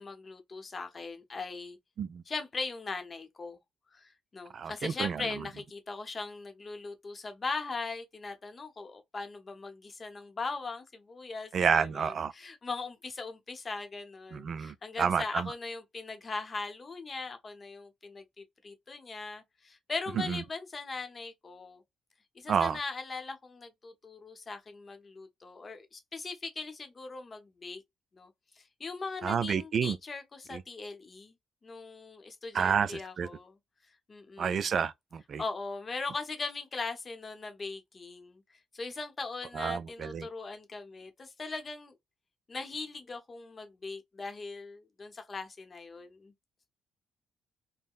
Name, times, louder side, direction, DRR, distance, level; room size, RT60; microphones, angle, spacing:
voice 1, 0.0-1.8 2.3-3.6 3.9-21.8 22.4-27.8 28.1-28.3 28.6-31.3 31.6-33.6 34.1-34.7 35.4-38.4 38.7-41.9 42.5-46.3, left 3 dB, 35° left, 0.7 m, -40 dB
voice 2, 4.5-5.4 11.5-12.3 14.3-15.5 20.2-20.4 22.5-22.8 29.2-30.0 30.5-30.6 32.5-33.3 34.4-35.4 39.5-40.3, right 7 dB, 55° right, 0.3 m, -30 dB
3.6 x 2.1 x 2.3 m
cardioid pair, 90°, 0 cm